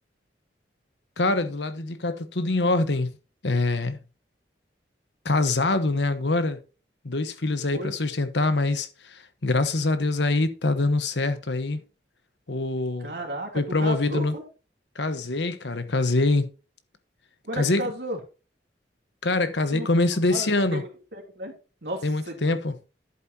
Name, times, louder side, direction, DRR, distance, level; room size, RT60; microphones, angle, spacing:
voice 1, 1.2-3.1 3.4-4.0 5.2-6.6 7.0-11.8 12.5-13.1 13.5-14.3 15.0-16.5 17.5-17.9 19.2-20.8 22.0-22.7, left 2 dB, 80° left, 1.1 m, -24 dB
voice 2, 13.0-14.4 17.4-18.2 19.7-21.5 21.8-22.6, right 1 dB, 70° right, 3.0 m, -34 dB
11.0 x 8.5 x 2.8 m
head